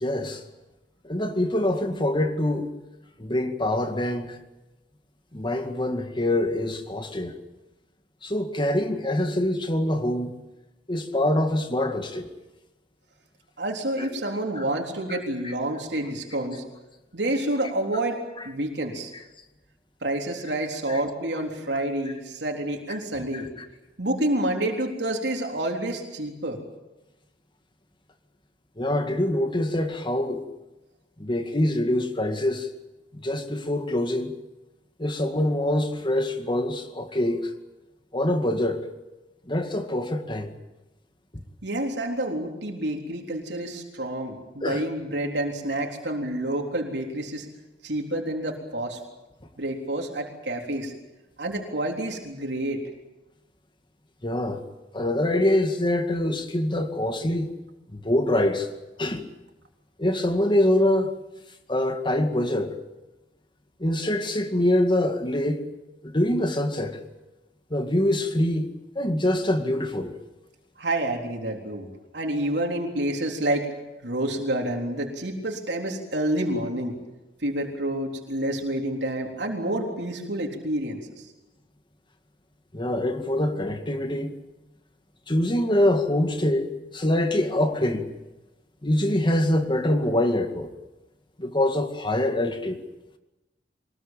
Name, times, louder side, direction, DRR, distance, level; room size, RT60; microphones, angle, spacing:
voice 1, 0.0-0.4 1.0-2.7 3.2-4.4 5.3-7.4 8.2-10.3 10.9-12.3 14.6-14.7 20.9-21.0 23.3-23.7 28.8-30.4 31.2-32.7 33.2-34.3 35.0-37.4 38.1-38.8 39.5-40.5 44.6-44.8 54.2-54.6 54.9-57.5 57.9-58.7 59.0-59.3 60.0-61.1 61.7-62.7 63.8-65.6 66.0-67.0 67.7-68.7 69.0-70.2 82.7-84.3 85.3-88.1 88.8-90.7 91.4-92.8, left 1 dB, 30° left, 2.1 m, -24 dB
voice 2, 13.6-16.6 17.1-19.1 20.0-23.5 24.0-26.6 41.6-47.5 47.8-49.0 49.6-50.9 51.4-52.8 70.8-71.9 72.1-73.7 74.0-77.0 77.4-81.3, right 1 dB, 75° right, 3.7 m, -28 dB
24.0 x 20.5 x 9.0 m
head